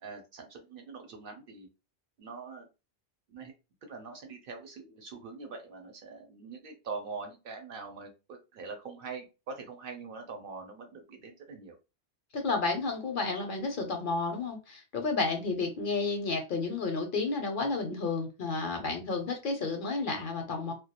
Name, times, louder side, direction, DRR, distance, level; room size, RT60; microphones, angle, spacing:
voice 1, 0.0-1.7 2.2-2.7 3.3-3.5 3.8-11.8, right 4 dB, 60° right, 0.7 m, -43 dB
voice 2, 12.3-20.7, left 3 dB, 60° left, 0.6 m, -31 dB
2.2 x 2.1 x 2.8 m
omnidirectional pair, 1.1 m